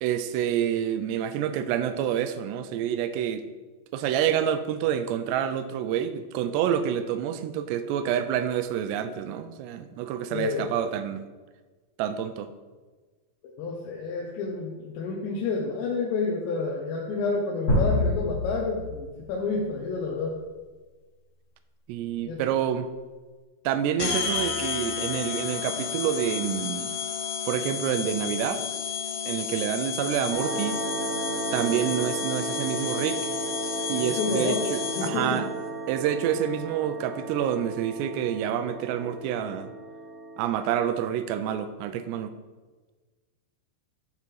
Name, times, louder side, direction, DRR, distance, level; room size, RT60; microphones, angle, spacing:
voice 1, 0.0-3.5 3.9-11.3 12.0-12.5 21.9-22.9 23.6-26.9 27.5-28.6 29.3-30.8 31.5-33.3 33.9-35.5 35.9-39.7 40.4-42.4, right 9 dB, 85° right, 10 dB, 2.7 m, -28 dB
voice 2, 10.3-10.7 13.6-20.3 22.2-22.4 34.0-34.6 35.0-35.4, left 4 dB, 90° left, -2 dB, 3.2 m, -29 dB
sound 1, 17.7-19.6, left 1 dB, 45° left, 3.4 m, -26 dB
sound 2, 24.0-35.4, left 7 dB, 70° left, 2.8 m, -32 dB
sound 3, 30.3-41.1, right 3 dB, 50° right, 1.8 m, -34 dB
12.5 x 4.8 x 4.7 m, 1.3 s
omnidirectional pair, 4.9 m